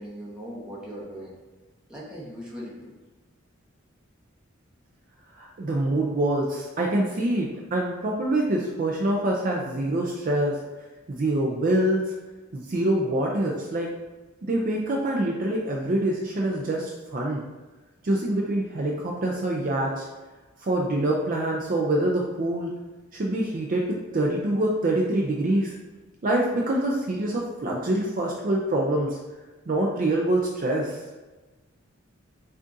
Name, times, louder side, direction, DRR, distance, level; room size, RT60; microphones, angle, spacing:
voice 1, 0.0-1.4 1.9-2.9, equal, 5° right, -6 dB, 1.0 m, -39 dB
voice 2, 5.4-10.5 11.1-12.1 12.5-13.9 14.4-17.4 18.0-20.1 20.6-22.7 23.1-25.7 26.2-29.2 29.7-31.0, right 1 dB, 40° right, -1 dB, 0.4 m, -25 dB
6.1 x 2.5 x 2.6 m, 1.2 s
head